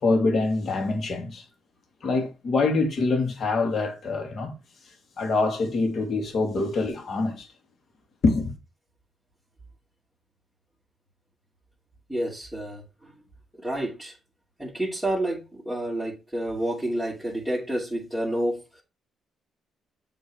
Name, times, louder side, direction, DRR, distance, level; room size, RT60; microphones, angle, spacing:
voice 1, 0.0-1.4 2.0-4.5 5.2-7.5 8.2-8.5, left 3 dB, 55° left, 2.5 m, -25 dB
voice 2, 12.1-13.1 13.5-14.2 14.6-18.8, right 1 dB, 5° left, 2.6 m, -29 dB
7.7 x 3.9 x 4.8 m
cardioid pair, 90°, 0 cm